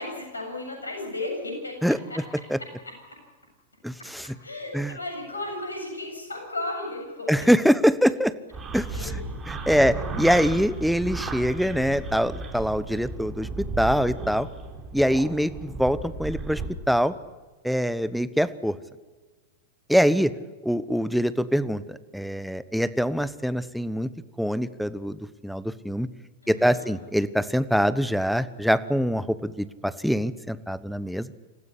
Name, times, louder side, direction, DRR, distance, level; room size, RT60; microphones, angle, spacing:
voice 1, 0.0-1.7 2.1-2.2 4.4-7.5 8.9-9.2 9.7-10.4 26.4-27.0, left 2 dB, 90° left, 2 dB, 7.8 m, -35 dB
voice 2, 3.8-4.3 4.7-4.9 7.3-8.3 8.7-9.2 9.5-13.5 13.8-14.5 14.9-16.6 16.9-17.1 17.6-18.8 19.9-20.3 20.6-24.1 24.4-26.1 26.5-31.3, equal, ahead, 14 dB, 1.1 m, -24 dB
sound 1, 8.5-16.7, right 3 dB, 20° right, 4.9 m, -34 dB
27.0 x 15.0 x 9.9 m, 1.3 s
hypercardioid pair, 100°, 0 cm